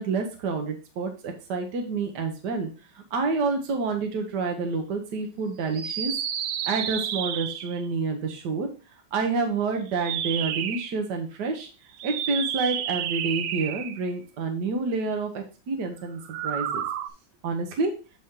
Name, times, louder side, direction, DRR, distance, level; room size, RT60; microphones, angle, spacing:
voice 1, 0.0-2.7 2.9-6.1 6.6-8.7 9.1-11.7 12.0-16.8 17.4-17.9, right 4 dB, 60° right, 4 dB, 1.5 m, -28 dB
sound 1, 5.7-7.9 9.9-10.9 11.9-14.1 16.2-17.1, right 10 dB, 90° right, 1.5 m, -31 dB
8.6 x 4.2 x 3.6 m, 0.34 s
omnidirectional pair, 2.2 m